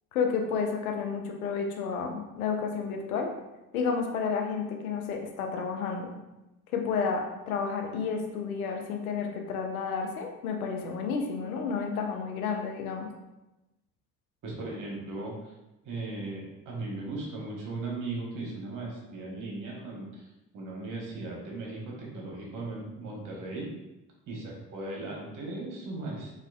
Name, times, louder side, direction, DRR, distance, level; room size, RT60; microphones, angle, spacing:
voice 1, 0.1-3.3 3.7-6.1 6.7-13.1, left 5 dB, 75° left, 2 dB, 0.6 m, -31 dB
voice 2, 14.4-15.5 15.8-20.3 20.5-23.7 24.3-26.3, right 2 dB, 45° right, -2 dB, 1.1 m, -37 dB
4.1 x 2.4 x 2.3 m, 0.99 s
figure-of-eight pair, 50°, 43 cm